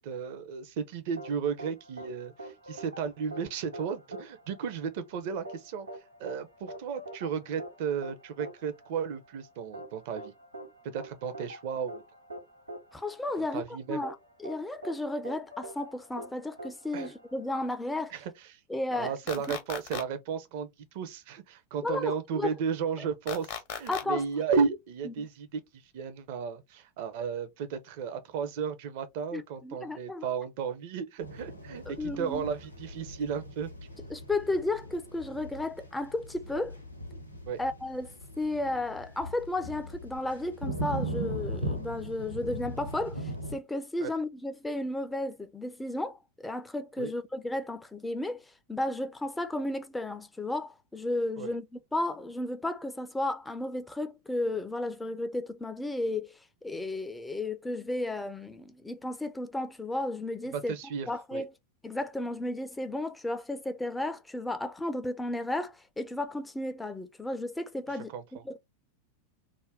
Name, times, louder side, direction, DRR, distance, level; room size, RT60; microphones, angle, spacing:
voice 1, 0.0-5.9 6.2-10.3 10.8-12.0 13.4-14.0 16.9-17.1 18.1-18.6 18.9-33.7 37.5-37.6 44.0-44.1 47.0-47.1 51.4-51.5 60.5-61.4 68.1-68.4, right 6 dB, 50° right, 0.5 m, -34 dB
sound 1, 1.2-18.0, right 1 dB, 85° right, 0.7 m, -45 dB
voice 2, 12.9-18.1 18.7-19.1 21.8-22.5 23.9-24.2 25.2-25.3 29.3-30.3 31.9-32.4 34.1-36.8 37.6-48.4 48.7-51.7 51.9-56.3 56.6-60.7 61.1-61.5 61.8-68.1 68.4-68.6, left 2 dB, 5° left, 0.4 m, -33 dB
sound 2, 19.3-20.0 23.3-24.0, left 9 dB, 45° left, 0.6 m, -37 dB
sound 3, 31.2-43.6, right 1 dB, 90° left, 0.6 m, -39 dB
2.5 x 2.1 x 3.3 m
figure-of-eight pair, 90°, 0 cm